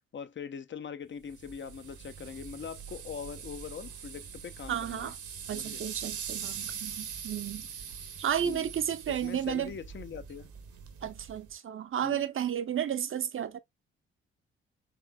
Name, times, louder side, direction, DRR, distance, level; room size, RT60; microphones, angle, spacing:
voice 1, 0.1-5.1 5.5-5.8 8.4-8.7 9.1-10.5 12.0-12.2, left 7 dB, 35° left, 0.7 m, -42 dB
sound 1, 1.3-11.6, right 7 dB, 65° right, 1.1 m, -42 dB
voice 2, 4.7-5.2 5.5-7.7 8.2-9.7 11.0-13.6, right 9 dB, 40° right, 0.7 m, -32 dB
4.4 x 3.3 x 2.2 m
hypercardioid pair, 40°, 32 cm